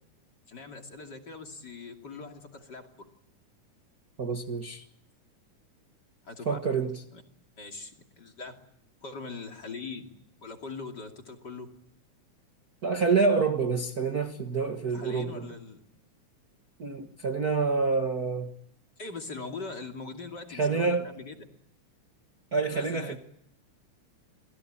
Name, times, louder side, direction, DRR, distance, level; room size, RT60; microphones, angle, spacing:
voice 1, 0.5-3.1 6.2-6.6 7.1-7.2 7.6-8.6 9.0-10.1 10.4-11.7 14.9-15.8 19.0-21.4 22.7-23.2, left 4 dB, 35° left, 3.0 m, -41 dB
voice 2, 4.2-4.8 6.4-7.0 12.8-15.5 16.8-18.5 20.5-21.1 22.5-23.2, right 4 dB, 40° right, 1.5 m, -27 dB
28.0 x 21.0 x 8.8 m
omnidirectional pair, 3.5 m